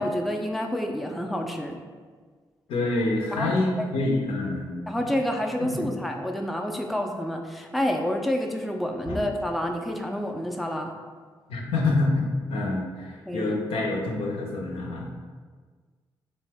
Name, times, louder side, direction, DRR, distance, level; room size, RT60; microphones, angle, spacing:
voice 1, 0.0-1.8 3.3-3.5 4.9-10.9 13.3-13.6, equal, ahead, 2 dB, 0.3 m, -28 dB
voice 2, 2.7-4.8 5.6-6.0 9.1-9.2 11.5-15.2, left 2 dB, 75° left, -1 dB, 0.5 m, -27 dB
2.6 x 2.0 x 3.4 m, 1.5 s
supercardioid pair, 50°, 10 cm